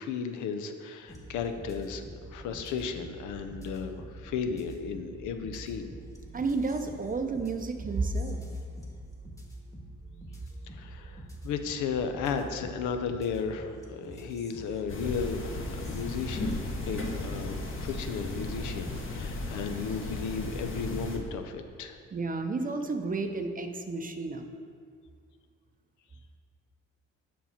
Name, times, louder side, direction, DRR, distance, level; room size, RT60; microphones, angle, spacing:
voice 1, 0.0-5.9 10.7-22.0, left 6 dB, 80° left, 7 dB, 0.6 m, -34 dB
sound 1, 1.1-19.4, right 1 dB, 10° left, 1.2 m, -46 dB
voice 2, 6.3-8.4 22.1-24.5, right 3 dB, 30° right, 6 dB, 0.6 m, -31 dB
sound 2, 14.9-21.2, left 2 dB, 45° left, 1.2 m, -35 dB
7.2 x 5.6 x 4.3 m, 2.1 s
cardioid pair, 90°, 30 cm